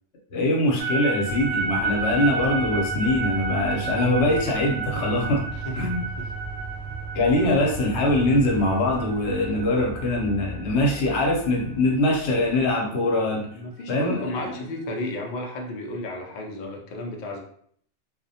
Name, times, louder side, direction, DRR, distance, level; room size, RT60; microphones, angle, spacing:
voice 1, 0.3-5.4 5.8-6.0 7.1-13.5 13.9-14.7, left 1 dB, 80° left, 0 dB, 0.9 m, -23 dB
sound 1, 0.8-13.0, right 4 dB, 80° right, 1.0 m, -32 dB
sound 2, 1.2-12.7, right 4 dB, 20° right, 0.4 m, -37 dB
voice 2, 5.5-6.3 11.0-11.5 13.5-17.4, left 1 dB, 55° left, 0 dB, 0.5 m, -34 dB
2.4 x 2.1 x 2.6 m, 0.62 s
omnidirectional pair, 1.1 m